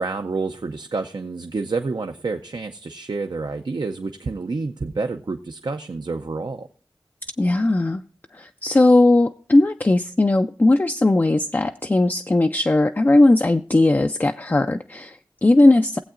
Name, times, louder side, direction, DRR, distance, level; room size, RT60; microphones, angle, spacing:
voice 1, 0.0-6.7, right 3 dB, 65° right, 0.5 m, -28 dB
voice 2, 7.4-8.0 8.3-16.0, left 2 dB, 25° left, 0.3 m, -18 dB
19.5 x 7.8 x 2.5 m
wide cardioid pair, 65°, 8 cm